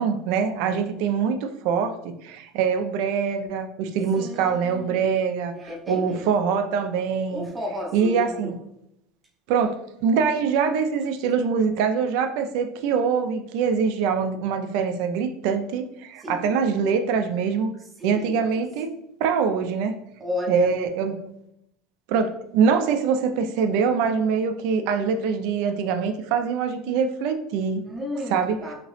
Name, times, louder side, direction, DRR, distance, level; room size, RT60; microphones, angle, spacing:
voice 1, 0.0-5.5 5.9-7.5 7.9-8.5 9.5-17.7 18.0-18.9 19.2-20.0 20.5-21.3 22.1-27.8 28.3-28.6, right 6 dB, 70° right, 7 dB, 0.4 m, -24 dB
voice 2, 4.2-5.0 5.5-6.3 7.3-8.5 16.2-16.6 18.0-18.5 20.2-20.8 27.9-28.7, left 1 dB, 15° right, -1 dB, 0.7 m, -32 dB
2.9 x 2.8 x 3.1 m, 0.78 s
cardioid pair, 150°, 0 cm